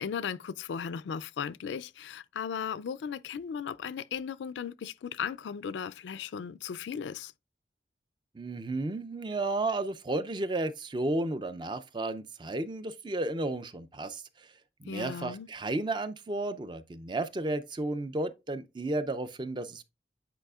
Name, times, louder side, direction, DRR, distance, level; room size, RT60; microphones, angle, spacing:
voice 1, 0.0-7.3 14.9-15.5, left 7 dB, 85° left, 0.3 m, -36 dB
voice 2, 8.3-14.2 14.8-19.8, right 2 dB, 25° right, 0.4 m, -33 dB
9.0 x 4.8 x 2.3 m
head